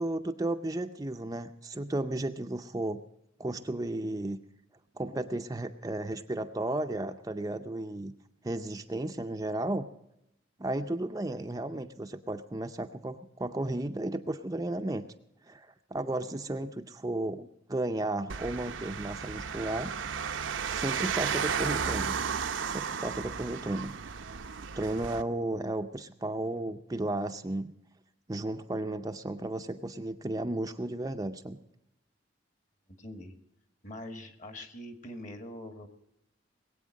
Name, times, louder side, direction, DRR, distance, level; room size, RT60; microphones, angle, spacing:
voice 1, 0.0-3.0 3.4-4.4 4.9-8.1 8.4-9.9 10.6-15.1 15.5-19.9 20.7-22.2 22.7-23.9 24.8-27.7 28.3-31.6, right 1 dB, 20° right, 6 dB, 0.5 m, -34 dB
sound 1, 18.3-25.2, right 6 dB, 80° right, 0.7 m, -34 dB
voice 2, 32.9-33.3 33.8-35.9, left 1 dB, 40° left, 7 dB, 1.7 m, -43 dB
20.5 x 8.4 x 6.3 m, 0.81 s
head